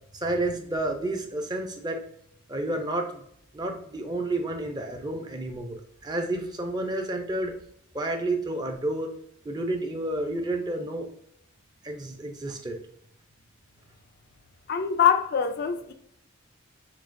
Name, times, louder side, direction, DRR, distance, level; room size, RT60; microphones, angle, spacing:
voice 1, 0.1-2.0 2.5-3.3 3.5-7.5 7.9-9.1 9.4-11.1 11.8-12.8, right 2 dB, 20° right, 0.5 m, -30 dB
voice 2, 14.7-15.9, left 8 dB, 50° left, 0.3 m, -23 dB
7.0 x 2.9 x 2.5 m
head